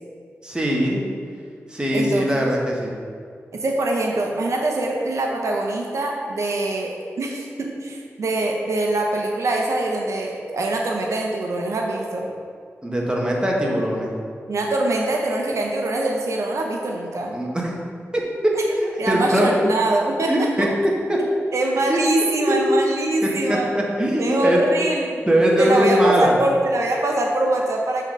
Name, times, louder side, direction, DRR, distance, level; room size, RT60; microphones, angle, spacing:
voice 1, 0.4-1.0 1.7-2.9 12.8-14.1 17.3-17.7 18.1-18.5 18.8-19.5 20.3-20.7 21.1-21.2 21.9-22.0 22.5-22.6 23.7-24.6 25.3-26.4, equal, 15° right, -2 dB, 1.4 m, -21 dB
voice 2, 1.9-2.5 3.5-12.3 14.5-17.4 18.5-18.6 19.0-20.5 21.5-23.7 24.2-25.2 25.6-28.0, right 2 dB, 80° right, 0 dB, 0.7 m, -23 dB
7.5 x 3.8 x 5.3 m, 2.1 s
wide cardioid pair, 70°, 5 cm